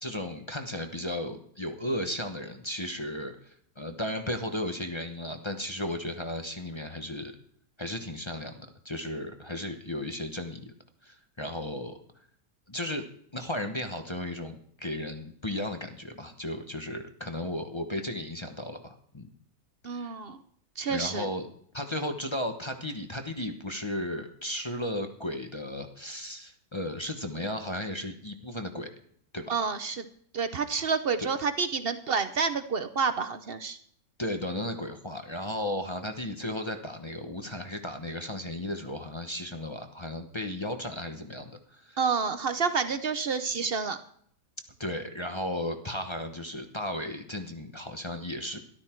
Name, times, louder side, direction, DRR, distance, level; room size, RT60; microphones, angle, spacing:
voice 1, 0.0-7.3 7.8-10.7 11.0-12.0 12.7-13.0 13.3-19.3 19.9-20.2 20.9-21.5 21.7-28.9 29.3-29.6 31.2-31.3 34.2-42.0 44.8-48.7, left 1 dB, 20° left, 6 dB, 0.8 m, -35 dB
voice 2, 19.8-20.4 20.8-21.3 29.5-30.1 30.3-33.8 42.0-44.0, right 5 dB, 50° right, 10 dB, 0.7 m, -29 dB
13.5 x 12.5 x 4.5 m, 0.63 s
omnidirectional pair, 1.9 m